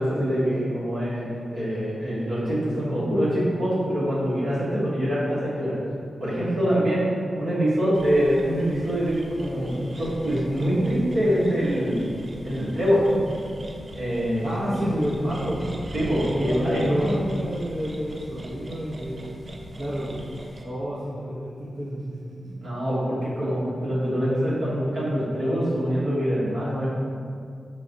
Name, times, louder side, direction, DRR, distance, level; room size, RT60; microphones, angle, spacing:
voice 1, 0.0-5.8 6.2-12.1 12.4-13.3 13.9-14.8 15.9-17.2 22.4-26.9, equal, 85° right, -9 dB, 1.3 m, -24 dB
sound 1, 7.9-20.6, right 1 dB, 35° right, 0.4 m, -39 dB
voice 2, 14.4-15.7 16.2-19.2 19.8-20.2 20.6-22.6, equal, 60° right, -10 dB, 0.7 m, -30 dB
4.9 x 3.2 x 2.6 m, 2.3 s
wide cardioid pair, 135°, 0 cm